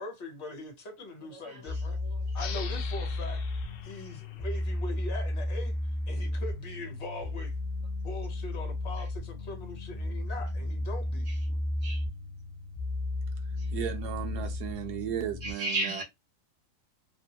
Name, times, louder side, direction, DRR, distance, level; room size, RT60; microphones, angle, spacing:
voice 1, 0.0-2.0 2.3-3.4 3.8-5.7 6.1-7.5 8.0-11.3, left 2 dB, 50° left, 1.1 m, -41 dB
voice 2, 1.3-2.5 6.1-6.3 9.0-9.1 11.2-12.0 13.6-13.7 15.4-16.0, right 1 dB, 65° right, 1.4 m, -37 dB
sound 1, 1.7-15.5, left 2 dB, 20° left, 0.9 m, -33 dB
sound 2, 2.3-5.6, left 7 dB, 70° left, 0.8 m, -45 dB
voice 3, 13.7-16.0, right 10 dB, 85° right, 1.3 m, -35 dB
3.4 x 2.2 x 2.7 m
omnidirectional pair, 1.7 m